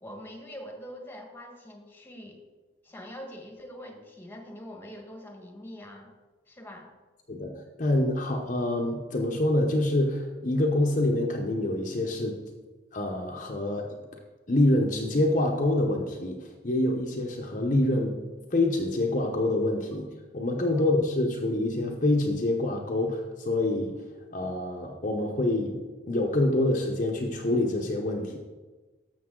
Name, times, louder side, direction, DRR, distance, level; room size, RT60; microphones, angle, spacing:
voice 1, 0.0-2.4 2.8-6.1 6.5-6.9 20.7-20.8, equal, 10° left, 3 dB, 1.4 m, -44 dB
voice 2, 7.3-12.4 12.9-13.9 14.5-18.2 18.5-20.1 20.3-23.9 24.3-25.8 26.1-28.4, left 1 dB, 40° left, 1 dB, 0.9 m, -26 dB
12.0 x 6.9 x 3.8 m, 1.3 s
head